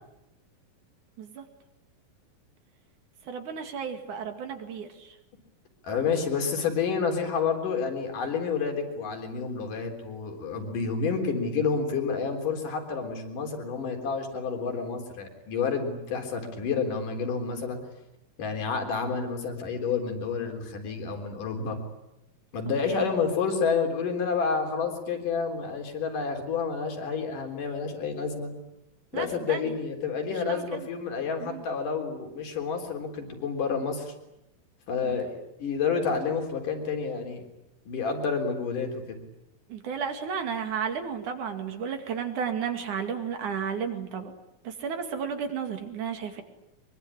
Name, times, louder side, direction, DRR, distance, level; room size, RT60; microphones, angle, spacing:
voice 1, 3.3-5.2 22.9-23.1 29.1-29.7 30.5-30.9 31.4-31.6 35.0-35.2 39.7-44.3 44.6-46.4, right 7 dB, 60° right, 6 dB, 3.7 m, -33 dB
voice 2, 5.8-17.8 18.4-21.8 22.5-28.5 29.1-34.1 34.9-37.4 37.9-39.2, left 5 dB, 65° left, 4 dB, 5.2 m, -29 dB
24.5 x 23.0 x 9.7 m, 0.89 s
omnidirectional pair, 4.1 m